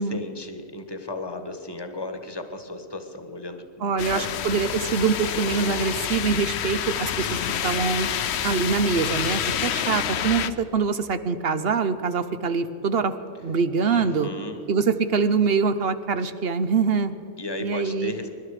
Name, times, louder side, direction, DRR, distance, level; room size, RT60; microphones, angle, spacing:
voice 1, 0.0-4.7 13.9-14.6 17.4-18.3, left 2 dB, 20° left, 7 dB, 1.3 m, -35 dB
voice 2, 3.8-8.1 8.4-13.1 13.4-14.3 14.7-17.1 17.6-18.1, right 5 dB, 55° right, 11 dB, 0.9 m, -24 dB
sound 1, 4.0-10.5, left 9 dB, 65° left, 0.9 m, -28 dB
24.0 x 12.0 x 4.9 m, 2.9 s
omnidirectional pair, 1.3 m